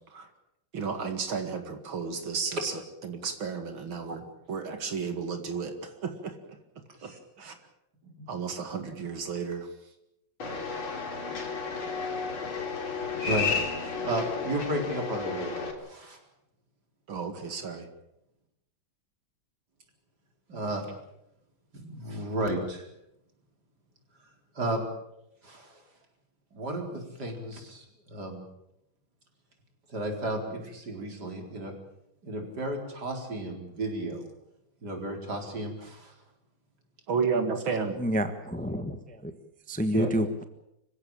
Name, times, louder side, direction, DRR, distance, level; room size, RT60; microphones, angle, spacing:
voice 1, 0.7-2.7 3.1-4.2 4.5-6.3 7.0-7.1 7.4-7.5 8.3-9.7 17.1-17.9 37.1-38.0, right 5 dB, 75° right, 7 dB, 2.9 m, -32 dB
sound 1, 10.4-15.7, left 5 dB, 85° left, 4.2 m, -32 dB
voice 2, 14.0-16.2 20.5-20.9 21.7-22.9 24.5-24.9 25.4-25.8 26.5-28.4 29.9-31.7 32.2-34.2 34.8-36.1 39.9-40.1, right 1 dB, 50° right, 3 dB, 4.8 m, -33 dB
voice 3, 38.0-39.3 39.7-40.3, equal, 5° left, 8 dB, 1.1 m, -28 dB
25.5 x 16.0 x 9.0 m, 0.84 s
omnidirectional pair, 2.2 m